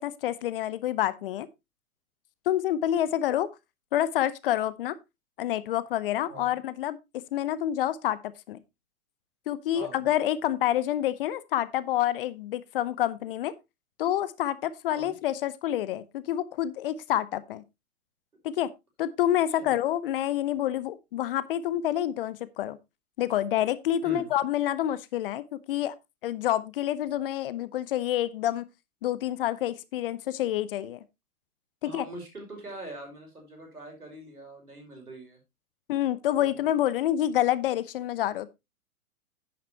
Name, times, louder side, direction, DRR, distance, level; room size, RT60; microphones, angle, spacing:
voice 1, 0.0-1.5 2.5-3.5 3.9-5.0 5.4-8.2 8.5-8.6 9.5-13.5 14.0-17.6 18.4-18.7 19.0-22.8 23.2-25.9 26.2-28.6 29.0-31.0 31.8-32.0 35.9-38.5, left 12 dB, 40° left, 0.8 m, -28 dB
voice 2, 31.8-35.4 36.3-36.7, right 1 dB, 85° right, 5.3 m, -43 dB
10.5 x 9.2 x 2.8 m
figure-of-eight pair, 110°, 44 cm